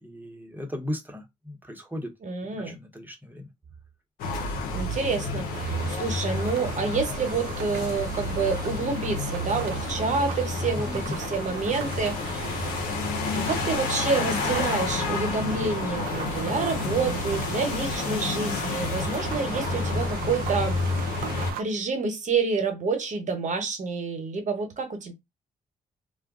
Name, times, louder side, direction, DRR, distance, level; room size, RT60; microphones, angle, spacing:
voice 1, 0.0-2.1 2.6-3.4 10.8-11.1, left 1 dB, 10° right, 0.9 m, -36 dB
voice 2, 2.2-2.8 4.7-5.5 5.9-12.7 13.3-20.8 21.5-25.1, right 4 dB, 55° right, 1.0 m, -28 dB
sound 1, 4.2-21.5, left 3 dB, 90° left, 0.7 m, -30 dB
sound 2, 5.5-21.6, right 9 dB, 80° right, 0.4 m, -39 dB
2.3 x 2.2 x 3.6 m
supercardioid pair, 60°, 15 cm